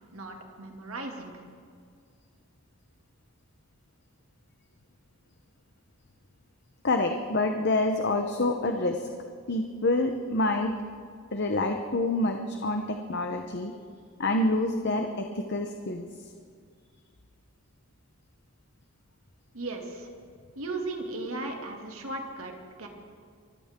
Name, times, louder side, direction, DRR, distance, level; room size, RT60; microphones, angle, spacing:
voice 1, 0.1-1.4 19.5-20.1 20.6-22.9, right 2 dB, 85° right, 2 dB, 2.5 m, -36 dB
voice 2, 6.8-9.1 9.5-10.7 11.3-13.7 14.2-16.0, left 2 dB, 50° left, 5 dB, 0.9 m, -27 dB
24.0 x 15.0 x 3.8 m, 2.2 s
head